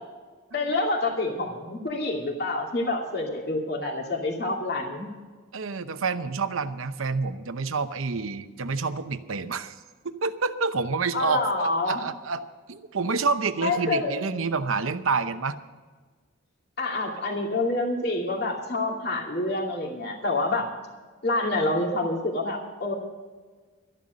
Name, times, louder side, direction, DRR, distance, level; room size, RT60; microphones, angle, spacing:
voice 1, 0.5-5.1 11.1-12.0 13.6-14.1 16.8-20.7 21.2-22.9, left 2 dB, 50° left, 0 dB, 2.5 m, -27 dB
voice 2, 5.5-9.7 10.0-12.4 12.7-15.6, right 4 dB, 85° right, 11 dB, 0.8 m, -28 dB
13.0 x 11.0 x 6.4 m, 1.4 s
head